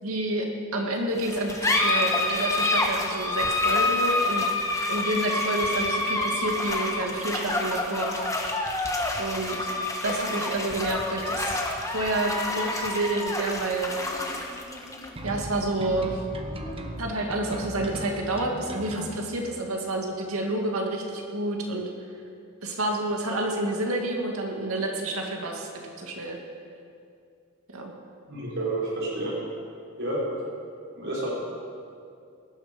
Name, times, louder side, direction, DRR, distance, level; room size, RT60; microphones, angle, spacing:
voice 1, 0.0-4.5 4.9-8.1 9.2-9.7 10.0-11.6 11.9-13.9 15.2-16.2 17.0-21.9 22.6-26.4 27.7-27.9, right 1 dB, 85° right, 1 dB, 2.2 m, -29 dB
sound 1, 1.2-18.2, left 2 dB, 15° left, 1.3 m, -28 dB
sound 2, 15.2-19.2, right 1 dB, 25° right, 1.1 m, -37 dB
voice 2, 28.3-29.3 30.0-30.3 30.9-31.3, right 2 dB, 60° right, -6 dB, 4.8 m, -29 dB
18.0 x 11.5 x 5.3 m, 2.4 s
head